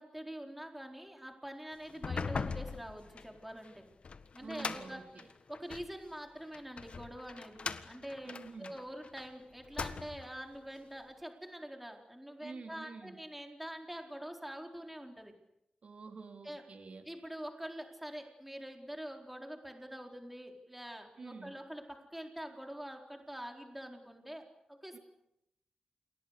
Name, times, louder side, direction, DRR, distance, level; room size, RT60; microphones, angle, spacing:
voice 1, 0.0-3.8 4.3-5.0 5.5-8.3 8.6-15.3 16.4-16.6 17.1-25.0, equal, 5° right, 3 dB, 4.3 m, -45 dB
sound 1, 1.9-5.9 6.5-9.3 9.6-10.4, left 5 dB, 50° left, 1.6 m, -41 dB
voice 2, 4.4-5.3 8.2-8.7 12.4-13.2 15.8-17.1 21.2-21.5 24.9-25.0, right 4 dB, 55° right, 5 dB, 3.2 m, -48 dB
29.5 x 29.0 x 6.7 m, 0.81 s
wide cardioid pair, 160°, 3 cm